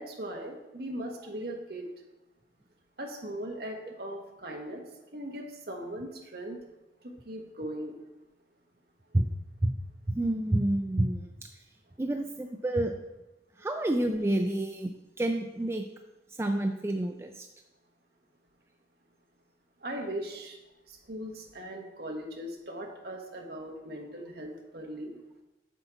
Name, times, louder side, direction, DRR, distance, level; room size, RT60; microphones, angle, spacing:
voice 1, 0.0-1.9 3.0-4.8 5.1-6.6 7.0-7.9 19.8-20.6 21.1-25.1, right 1 dB, 60° right, 1 dB, 1.2 m, -39 dB
voice 2, 10.1-11.3 12.0-12.9 13.6-14.9 15.2-15.9 16.4-17.5, right 1 dB, 15° right, 4 dB, 0.3 m, -28 dB
8.1 x 6.0 x 3.9 m, 0.98 s
head